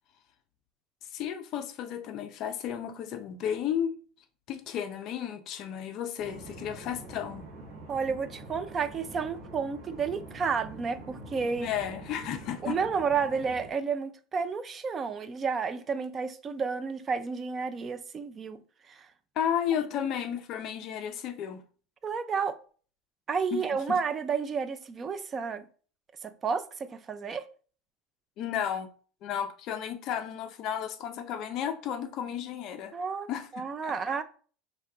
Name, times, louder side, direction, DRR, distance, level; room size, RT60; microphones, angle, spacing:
voice 1, 1.1-3.9 4.5-7.5 11.6-12.8 19.4-21.6 23.5-23.6 23.9-24.0 28.4-28.9 29.2-32.9 33.3-34.2, left 9 dB, 40° left, 0.5 m, -33 dB
sound 1, 6.2-13.7, right 2 dB, 50° right, 1.2 m, -46 dB
voice 2, 7.9-11.7 12.6-18.6 18.9-19.1 22.0-22.6 23.3-25.7 26.2-27.5 32.9-34.2, right 5 dB, 20° right, 0.3 m, -31 dB
5.1 x 2.7 x 3.4 m
cardioid pair, 165°, 0 cm